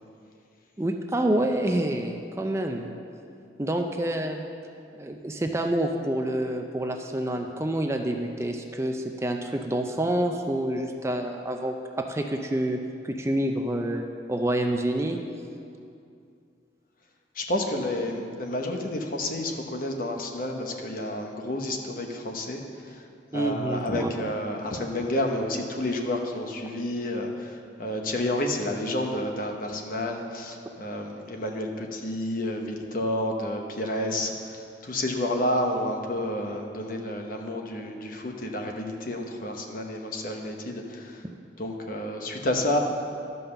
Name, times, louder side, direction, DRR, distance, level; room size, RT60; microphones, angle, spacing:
voice 1, 0.8-2.9 3.6-4.5 4.9-12.8 13.0-15.2 23.3-24.1, right 1 dB, 15° right, 4 dB, 0.4 m, -27 dB
voice 2, 17.3-23.0 23.3-41.2 41.6-42.8, left 1 dB, 50° left, 2 dB, 1.0 m, -30 dB
12.0 x 5.5 x 6.9 m, 2.5 s
head